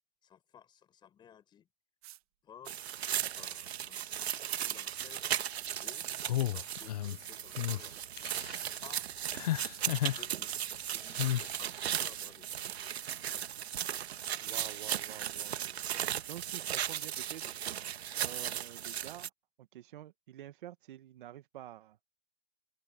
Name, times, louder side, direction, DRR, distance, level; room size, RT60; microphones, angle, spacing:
voice 1, 0.2-1.7 2.4-2.8 3.4-4.3 4.6-5.2 5.8-6.1 6.4-8.0 8.8-9.1 10.0-12.6, left 9 dB, 15° left, 6.4 m, -56 dB
sound 1, 2.0-2.2 2.7-3.0 3.6-3.9 4.4-4.7 5.2-5.5 6.0-6.3 6.7-11.4 12.0-12.3 12.8-13.1 13.6-13.9 14.3-14.7 15.0-17.2 17.6-17.8, right 18 dB, 35° right, 1.6 m, -54 dB
sound 2, 2.7-19.3, right 10 dB, 80° right, 1.7 m, -37 dB
sound 3, 6.3-7.2 7.6-7.8 8.2-8.7 9.3-10.2 11.2-11.5, left 13 dB, 40° left, 0.4 m, -33 dB
voice 2, 14.4-15.5 16.3-17.4 18.2-19.3 19.6-22.0, right 13 dB, 50° right, 1.3 m, -48 dB
open air
hypercardioid pair, 165°, 32 cm